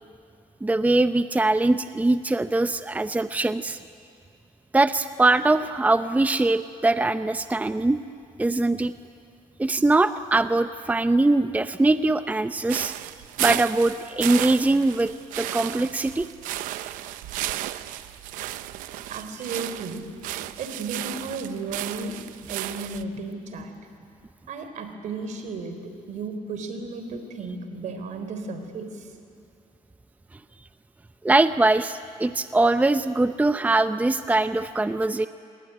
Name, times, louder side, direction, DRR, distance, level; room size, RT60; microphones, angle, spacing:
voice 1, 0.6-3.8 4.7-8.0 8.4-8.9 9.6-12.9 13.4-16.3 31.2-35.3, right 2 dB, 10° right, 11 dB, 0.7 m, -22 dB
sound 1, 12.7-23.0, right 14 dB, 90° right, 0.7 m, -33 dB
voice 2, 19.1-20.2 20.6-23.7 24.5-29.1, right 3 dB, 70° right, 8 dB, 3.6 m, -34 dB
26.0 x 20.5 x 9.7 m, 2.4 s
cardioid pair, 90°, 13 cm